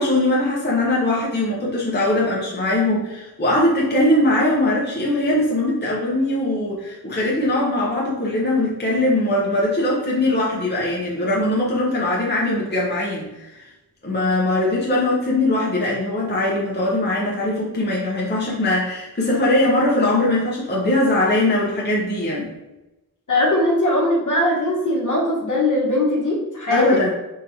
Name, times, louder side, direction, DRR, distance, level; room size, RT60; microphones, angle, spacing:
voice 1, 0.0-13.7 14.0-22.5 26.7-27.1, left 1 dB, 25° left, -5 dB, 0.8 m, -21 dB
voice 2, 23.3-27.0, left 1 dB, 50° left, -4 dB, 1.1 m, -20 dB
3.6 x 2.7 x 3.0 m, 0.97 s
wide cardioid pair, 65°, 38 cm